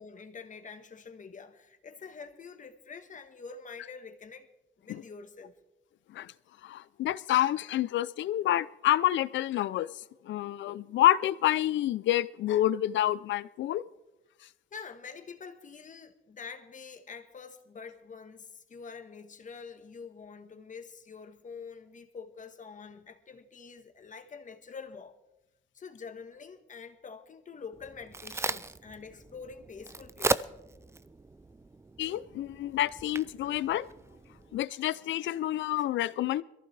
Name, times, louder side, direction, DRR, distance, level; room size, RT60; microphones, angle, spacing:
voice 1, 0.0-4.5 4.8-5.5 14.7-25.1 25.7-30.4, left 5 dB, 40° left, 1.4 m, -46 dB
voice 2, 6.6-9.9 10.3-13.8 32.0-33.9 34.5-36.4, left 13 dB, 70° left, 0.5 m, -28 dB
Crack, 27.7-34.6, right 3 dB, 15° right, 0.4 m, -37 dB
22.0 x 14.5 x 3.3 m
cardioid pair, 90°, 20 cm